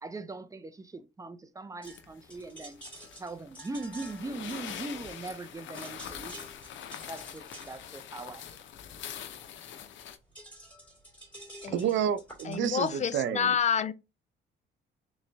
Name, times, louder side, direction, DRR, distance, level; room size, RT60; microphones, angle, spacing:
voice 1, 0.0-2.8 3.2-6.5 7.1-8.4, right 3 dB, 15° right, 0.6 m, -40 dB
sound 1, 1.8-10.2, left 9 dB, 70° left, 0.7 m, -44 dB
sound 2, 1.8-5.4 5.7-13.1, right 1 dB, 5° left, 2.7 m, -50 dB
voice 2, 11.7-13.5, right 9 dB, 70° right, 0.6 m, -30 dB
voice 3, 12.4-13.9, left 8 dB, 35° left, 0.4 m, -28 dB
3.8 x 3.1 x 3.4 m
cardioid pair, 90°, 20 cm